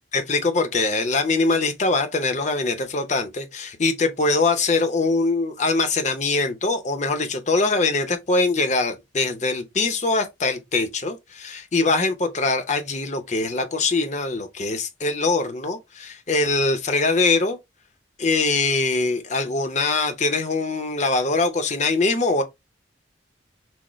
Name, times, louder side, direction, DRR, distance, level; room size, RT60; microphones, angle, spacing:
voice 1, 0.1-17.6 18.2-22.4, left 3 dB, 35° left, 0.7 m, -23 dB
6.2 x 2.1 x 3.1 m
head